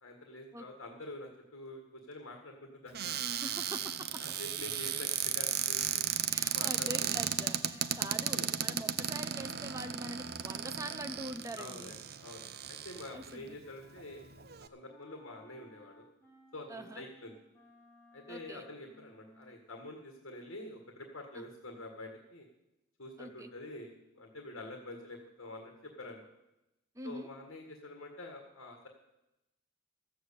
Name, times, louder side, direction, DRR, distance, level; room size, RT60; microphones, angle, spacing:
voice 1, 0.0-3.1 4.2-6.1 6.5-6.9 8.3-8.8 11.6-11.9 12.2-14.2 14.7-16.0 16.5-17.3 18.1-22.5 23.0-26.3 27.0-28.9, left 2 dB, 75° left, 3 dB, 1.9 m, -47 dB
Cupboard open or close, 2.9-13.3 14.0-14.1 14.3-14.7, right 9 dB, 50° right, 0.6 m, -35 dB
sound 1, 3.2-13.3 13.6-19.5, equal, 10° left, 2.3 m, -61 dB
voice 2, 3.3-3.9 6.3-11.9 13.1-13.5 16.7-17.1 18.3-18.7 21.3-21.4 23.2-23.5 26.9-27.3, right 1 dB, 15° right, 8 dB, 0.8 m, -44 dB
13.5 x 7.9 x 8.5 m, 0.91 s
head